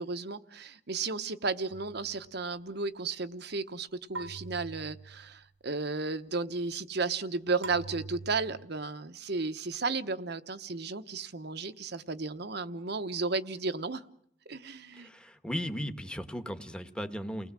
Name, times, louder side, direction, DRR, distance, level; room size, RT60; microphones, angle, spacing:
voice 1, 0.0-14.0 14.5-15.1, right 4 dB, 55° right, 11 dB, 1.1 m, -34 dB
sound 1, 1.7-2.4 4.1-5.5 7.6-8.7, right 3 dB, 80° right, 1.6 m, -44 dB
voice 2, 14.9-17.5, equal, 5° left, 7 dB, 1.5 m, -36 dB
30.0 x 20.0 x 7.5 m, 0.72 s
head